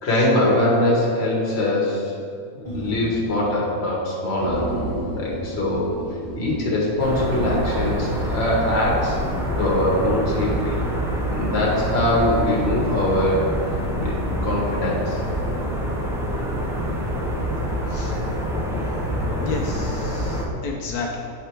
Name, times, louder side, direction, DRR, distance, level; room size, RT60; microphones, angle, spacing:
voice 1, 0.0-2.1 2.7-4.7 5.1-5.9 6.3-9.2 9.6-10.8 11.3-13.4 14.0-14.1 14.4-15.2, left 1 dB, 45° left, -4 dB, 1.4 m, -22 dB
sound 1, 2.7-3.7 3.9-4.0 4.3-7.7, right 2 dB, 25° left, 1.1 m, -32 dB
sound 2, 7.0-20.4, equal, 5° right, 0.4 m, -26 dB
voice 2, 19.4-21.2, left 4 dB, 80° left, -1 dB, 1.2 m, -31 dB
7.8 x 3.4 x 4.4 m, 2.3 s
omnidirectional pair, 1.6 m